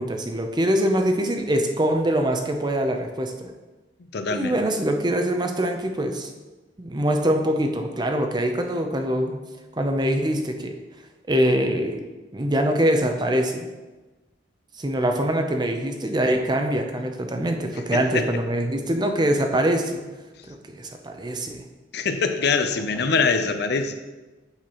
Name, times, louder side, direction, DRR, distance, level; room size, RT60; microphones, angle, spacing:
voice 1, 0.0-3.5 4.3-6.3 6.8-9.4 9.8-10.7 11.3-12.0 12.3-13.7 14.8-20.0 20.5-21.6, right 1 dB, 25° right, 4 dB, 0.6 m, -23 dB
voice 2, 4.1-4.6 17.9-18.3 21.9-24.1, left 4 dB, 60° left, 8 dB, 0.6 m, -24 dB
8.5 x 6.5 x 3.0 m, 1.2 s
head